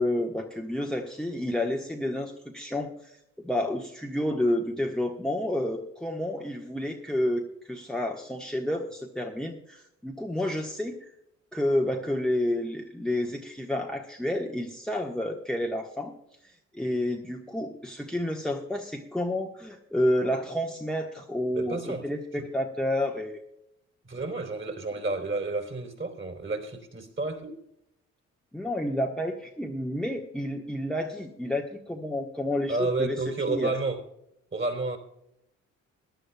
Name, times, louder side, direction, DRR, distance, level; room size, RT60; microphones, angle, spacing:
voice 1, 0.0-3.2 3.4-11.1 11.5-16.1 16.4-23.4 28.5-33.7, left 1 dB, ahead, 2 dB, 1.4 m, -30 dB
voice 2, 21.5-22.1 22.3-22.5 24.0-27.6 32.7-34.0 34.5-35.0, right 3 dB, 30° right, 5 dB, 3.6 m, -31 dB
22.0 x 11.5 x 2.3 m, 0.81 s
figure-of-eight pair, 40°, 40 cm